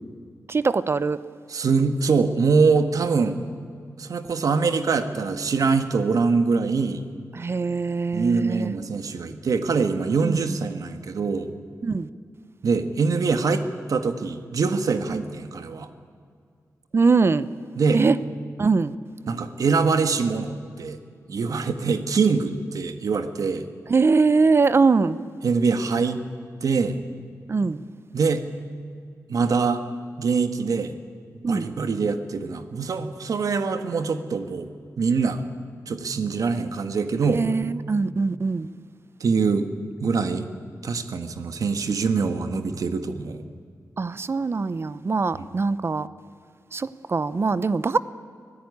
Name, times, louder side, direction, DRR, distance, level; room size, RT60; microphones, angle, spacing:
voice 1, 0.5-1.2 7.3-8.7 10.2-10.4 11.8-12.1 15.1-15.2 16.9-17.5 17.9-18.2 18.6-18.9 23.9-25.2 27.5-27.8 31.4-31.7 37.3-38.7 44.0-46.1 46.7-48.0, right 4 dB, 45° right, 16 dB, 0.7 m, -22 dB
voice 2, 1.5-3.4 4.0-7.0 8.1-11.5 12.6-15.9 17.8-18.0 19.3-21.0 21.3-23.7 25.4-26.2 26.6-27.0 28.1-28.4 29.3-29.8 30.2-30.9 31.5-34.7 35.0-35.4 35.9-37.5 39.2-39.7 40.0-40.5 40.8-43.4, right 4 dB, 75° right, 9 dB, 1.6 m, -23 dB
24.0 x 16.0 x 9.7 m, 2.2 s
wide cardioid pair, 100°, 6 cm